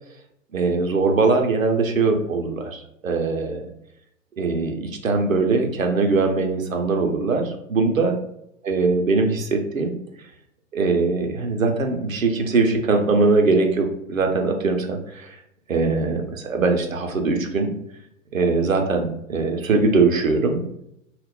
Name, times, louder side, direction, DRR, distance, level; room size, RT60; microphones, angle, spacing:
voice 1, 0.5-3.7 4.4-8.2 8.6-9.9 10.7-15.4 15.7-17.7 18.3-20.6, right 3 dB, 85° right, 3 dB, 0.6 m, -21 dB
2.3 x 2.1 x 3.6 m, 0.76 s
figure-of-eight pair, 110°, 39 cm